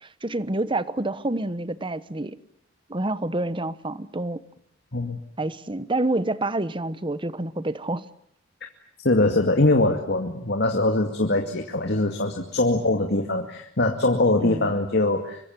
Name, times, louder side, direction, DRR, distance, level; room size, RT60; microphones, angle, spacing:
voice 1, 0.0-2.4 2.9-4.4 5.4-8.0 14.4-14.8, right 2 dB, 25° right, 1.1 m, -28 dB
voice 2, 9.0-15.4, left 2 dB, 55° left, 2.3 m, -22 dB
26.0 x 23.5 x 9.1 m
head